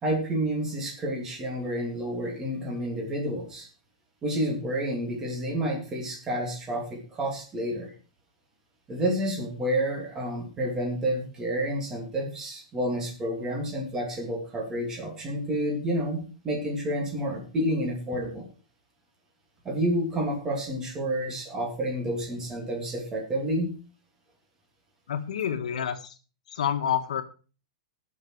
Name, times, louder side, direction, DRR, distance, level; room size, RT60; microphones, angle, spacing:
voice 1, 0.0-3.7 4.2-7.9 8.9-18.4 19.6-23.7, right 1 dB, 15° right, 0 dB, 2.8 m, -29 dB
voice 2, 25.1-26.1 26.5-27.2, left 9 dB, 85° left, 8 dB, 1.7 m, -28 dB
17.5 x 6.6 x 4.7 m, 0.36 s
supercardioid pair, 175°, 4 cm